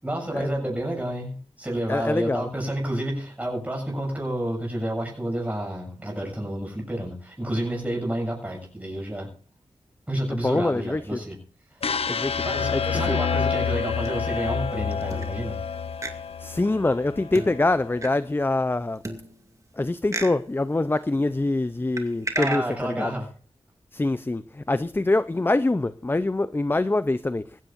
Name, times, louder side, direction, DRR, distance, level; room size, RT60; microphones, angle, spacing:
voice 1, 0.0-9.3 10.1-11.4 12.4-15.6 22.3-23.3, right 1 dB, 15° right, 7.3 m, -30 dB
voice 2, 1.9-2.5 10.3-11.2 12.1-12.4 12.7-13.2 16.4-19.0 19.8-23.2 23.9-27.4, left 2 dB, 20° left, 0.6 m, -25 dB
sound 1, 11.8-17.9, left 6 dB, 70° left, 0.6 m, -28 dB
sound 2, 13.6-14.5 15.1-15.7 16.0-16.1 17.3-18.1 19.0-19.7 20.1-20.3 22.0-22.6, right 2 dB, 30° right, 2.3 m, -34 dB
19.5 x 16.5 x 2.6 m
wide cardioid pair, 70°, 10 cm